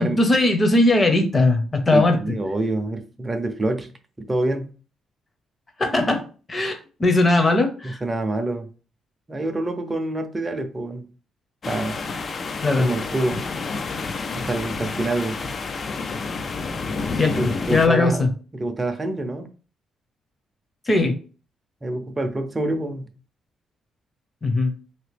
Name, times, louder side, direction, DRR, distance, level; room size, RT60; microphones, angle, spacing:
voice 1, 0.0-2.2 5.8-6.2 6.5-8.0 12.6-12.9 17.1-18.3 20.9-21.2 24.4-24.7, left 2 dB, 25° left, 0.8 m, -19 dB
voice 2, 1.9-3.9 4.2-4.7 7.8-8.7 9.3-11.1 11.7-12.0 12.8-13.4 14.3-15.4 17.4-18.2 18.5-19.5 21.8-23.1, right 2 dB, 20° right, 0.6 m, -26 dB
sound 1, 11.6-17.9, left 4 dB, 40° left, 0.4 m, -29 dB
2.9 x 2.8 x 3.3 m
cardioid pair, 90°, 0 cm